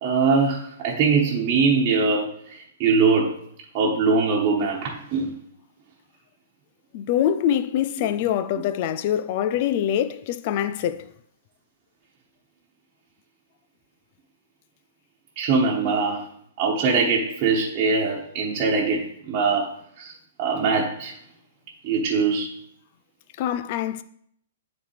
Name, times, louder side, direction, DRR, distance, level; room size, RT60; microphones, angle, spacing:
voice 1, 0.0-3.3 3.7-5.3 15.4-16.2 16.6-19.7 20.0-20.1 20.4-21.1 21.8-22.5, right 4 dB, 35° right, 1.4 m, -22 dB
voice 2, 6.9-11.1 23.4-24.0, left 10 dB, 45° left, 0.5 m, -24 dB
10.0 x 4.1 x 3.4 m
hypercardioid pair, 120°, 0 cm